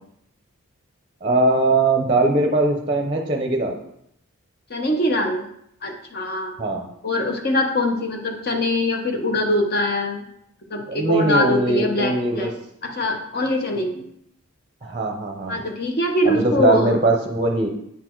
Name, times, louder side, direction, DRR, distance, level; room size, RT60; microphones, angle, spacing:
voice 1, 1.2-3.8 6.6-6.9 10.8-12.5 14.8-15.6 16.2-17.7, right 2 dB, 25° right, 2 dB, 0.6 m, -20 dB
voice 2, 4.7-5.5 5.8-6.5 7.0-10.2 10.7-12.5 12.8-14.0 15.5-16.9, left 1 dB, 45° left, 2 dB, 0.9 m, -23 dB
8.4 x 4.1 x 4.5 m, 0.73 s
head